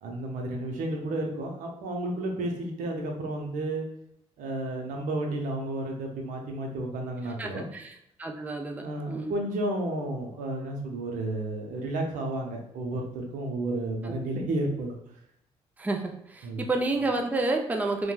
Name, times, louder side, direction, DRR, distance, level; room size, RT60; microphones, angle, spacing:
voice 1, 0.0-3.8 4.4-7.7 8.8-15.0 16.4-16.7, right 1 dB, 80° right, 1 dB, 0.6 m, -32 dB
voice 2, 7.4-7.9 8.2-9.3 14.0-14.2 15.8-18.1, right 2 dB, 10° right, 3 dB, 0.4 m, -30 dB
2.9 x 2.1 x 2.2 m, 0.77 s
cardioid pair, 70°, 13 cm